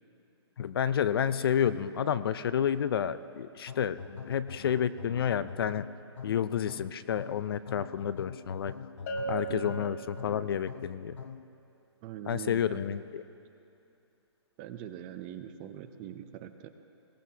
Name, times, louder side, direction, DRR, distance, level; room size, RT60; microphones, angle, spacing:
voice 1, 0.6-4.0 4.3-5.8 6.2-8.7 9.3-11.2 12.3-13.2, left 8 dB, 55° left, 15 dB, 0.5 m, -30 dB
sound 1, 3.7-11.5, left 6 dB, 85° left, 0.8 m, -44 dB
Bell, 9.1-10.7, right 4 dB, 35° left, 1.1 m, -37 dB
voice 2, 12.0-12.8 14.6-16.7, right 10 dB, 20° right, 9 dB, 0.5 m, -42 dB
21.5 x 18.0 x 2.8 m, 2.7 s
hypercardioid pair, 155°, 15 cm